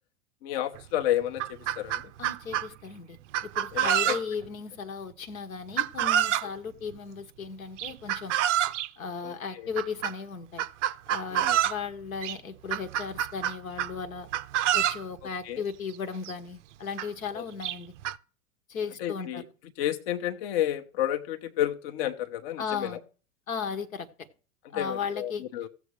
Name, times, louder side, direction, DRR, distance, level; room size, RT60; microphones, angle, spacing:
voice 1, 0.4-2.0 3.7-4.1 9.2-9.6 11.3-11.6 15.4-15.6 17.3-17.4 19.0-19.4 19.8-23.0 24.7-25.7, left 12 dB, 45° left, 0.9 m, -31 dB
Chicken rooster, 0.8-0.9 1.2-2.7 3.3-4.5 5.8-6.5 7.8-8.9 9.8-10.1 10.6-11.8 12.2-12.4 12.7-14.0 14.3-15.0 15.9-16.0 16.2-16.3 17.0-17.1 17.6-18.2, right 11 dB, 55° right, 0.6 m, -27 dB
voice 2, 2.2-8.7 9.0-10.7 11.1-14.3 14.7-17.9 18.7-19.4 22.6-23.0 23.5-24.1 24.7-25.4, left 6 dB, 75° left, 1.3 m, -36 dB
16.0 x 7.1 x 3.2 m
figure-of-eight pair, 95°, 42 cm